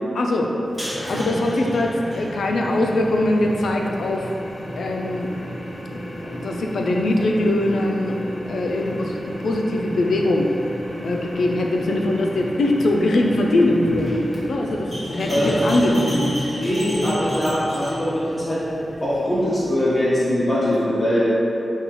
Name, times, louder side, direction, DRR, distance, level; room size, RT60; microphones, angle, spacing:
voice 1, 0.1-0.5 0.9-4.3 4.8-5.3 6.2-8.1 8.4-10.5 11.0-16.4, left 1 dB, 90° left, 1 dB, 0.3 m, -22 dB
sound 1, 0.6-20.0, equal, 15° right, 1.5 m, -32 dB
voice 2, 15.3-15.7 16.6-18.6 19.0-21.4, equal, 25° left, -11 dB, 0.9 m, -21 dB
5.3 x 2.3 x 3.0 m, 2.9 s
wide cardioid pair, 85°, 0 cm